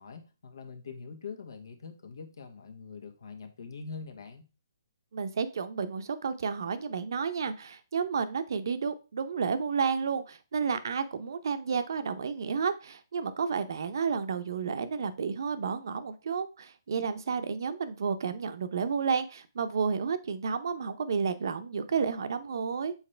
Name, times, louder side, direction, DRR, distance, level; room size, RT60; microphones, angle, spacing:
voice 1, 0.0-4.5, left 5 dB, 75° left, 5 dB, 1.4 m, -44 dB
voice 2, 5.1-22.9, right 6 dB, 60° right, 11 dB, 0.8 m, -31 dB
7.2 x 4.3 x 3.3 m, 0.32 s
hypercardioid pair, 160°, 2 cm